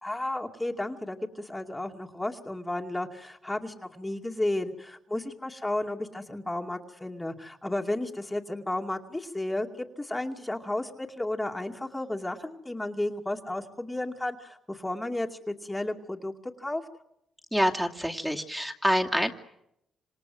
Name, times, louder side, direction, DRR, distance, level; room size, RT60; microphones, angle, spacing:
voice 1, 0.0-16.8, left 1 dB, 15° left, 3 dB, 2.4 m, -33 dB
voice 2, 17.5-19.3, equal, 5° right, 2 dB, 2.6 m, -26 dB
27.5 x 26.0 x 7.9 m, 0.81 s
cardioid pair, 85°, 0 cm